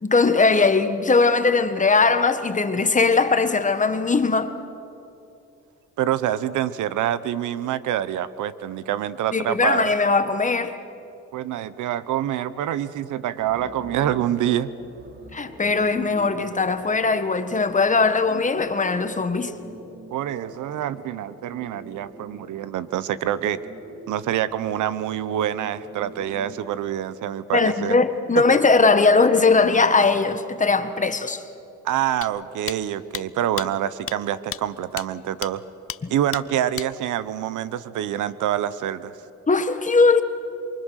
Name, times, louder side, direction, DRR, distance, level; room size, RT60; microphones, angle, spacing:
voice 1, 0.0-4.5 9.3-10.8 15.3-19.5 27.5-31.4 36.0-36.1 39.5-40.2, left 4 dB, 25° left, 1.5 m, -19 dB
voice 2, 6.0-9.9 11.3-14.7 20.1-23.6 24.1-28.0 28.5-28.6 31.8-35.6 36.1-39.1, right 11 dB, 80° right, 1.0 m, -26 dB
sound 1, 13.4-26.6, right 1 dB, 35° right, 3.3 m, -43 dB
sound 2, 32.2-32.3 32.7-32.8 33.1-33.2 33.6-33.7 34.1-34.2 34.5-34.6 35.0-35.1 35.4-35.5 35.9-36.0 36.3-36.4 36.8-36.9, left 10 dB, 45° left, 0.7 m, -31 dB
28.0 x 23.5 x 6.5 m
cardioid pair, 90°, 30 cm